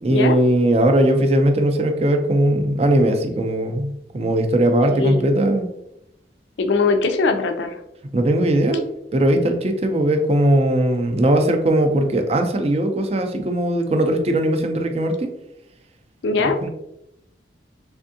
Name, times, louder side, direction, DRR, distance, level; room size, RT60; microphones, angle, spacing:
voice 1, 0.0-5.7 8.1-15.3 16.4-16.7, right 1 dB, 35° right, 5 dB, 0.4 m, -19 dB
voice 2, 6.6-7.8 16.2-16.6, left 4 dB, 80° left, 6 dB, 0.4 m, -20 dB
3.5 x 3.4 x 2.6 m, 0.82 s
head